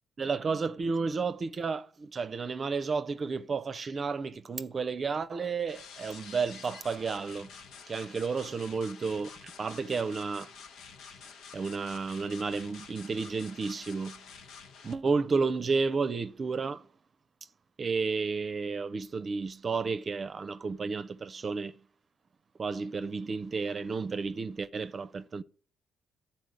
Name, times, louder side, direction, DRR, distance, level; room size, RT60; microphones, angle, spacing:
voice 1, 0.2-7.5 7.9-10.5 11.5-14.2 14.8-16.9 17.8-21.8 22.6-25.4, right 4 dB, 40° right, 0.5 m, -32 dB
sound 1, 5.7-14.9, left 6 dB, 80° left, 1.1 m, -49 dB
13.0 x 4.3 x 7.7 m
cardioid pair, 90°, 0 cm